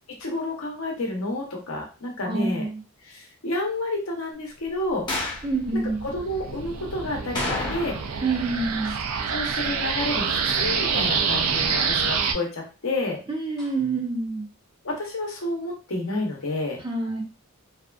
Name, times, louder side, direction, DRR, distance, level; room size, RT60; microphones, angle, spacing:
voice 1, 0.2-2.7 3.0-5.1 5.7-8.0 9.3-13.2 14.8-16.8, left 2 dB, 70° left, 1 dB, 0.8 m, -30 dB
voice 2, 2.2-2.8 5.4-6.0 8.2-9.0 13.3-14.5 16.8-17.2, right 3 dB, 20° right, 0 dB, 0.6 m, -27 dB
sound 1, 5.0-12.3, right 6 dB, 75° right, 0.4 m, -27 dB
sound 2, 5.1-5.5 7.3-8.2 8.5-8.6 13.6-13.7, left 2 dB, 20° left, 0.8 m, -30 dB
2.8 x 2.4 x 2.2 m, 0.32 s
head